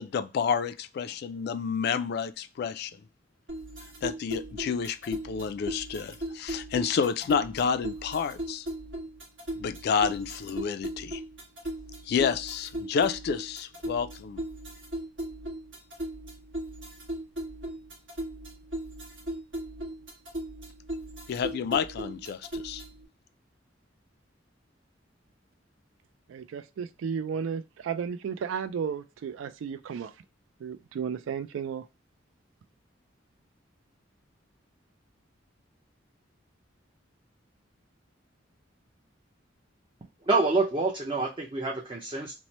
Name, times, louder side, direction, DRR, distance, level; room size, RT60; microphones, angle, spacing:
voice 1, 0.0-2.9 4.0-8.7 9.6-11.2 12.1-14.4 21.3-22.8, left 6 dB, 55° left, 0.3 m, -29 dB
sound 1, 3.5-23.1, right 1 dB, 70° right, 1.2 m, -38 dB
voice 2, 26.3-30.1 30.6-31.8, right 7 dB, 90° right, 0.3 m, -33 dB
voice 3, 40.3-42.3, right 3 dB, 25° right, 0.5 m, -27 dB
3.0 x 2.0 x 4.0 m
head